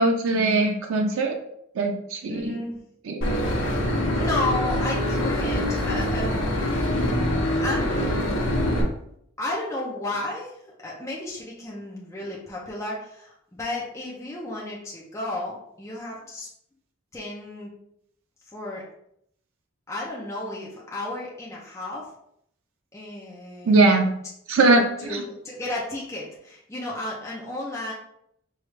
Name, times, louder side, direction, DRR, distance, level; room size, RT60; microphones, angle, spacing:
voice 1, 0.0-1.4 1.8-2.6 3.1-3.2 23.7-24.1 24.5-25.2, right 2 dB, 85° right, 3 dB, 0.5 m, -21 dB
voice 2, 2.3-2.8 4.2-6.6 7.2-8.4 9.4-16.5 17.1-17.7 18.5-18.8 19.9-22.1 22.9-23.8 24.6-27.9, left 2 dB, 15° left, -5 dB, 0.6 m, -33 dB
Boat Water vehicle / Engine, 3.2-8.8, left 1 dB, 65° left, 1.1 m, -24 dB
4.8 x 2.4 x 3.2 m, 0.74 s
head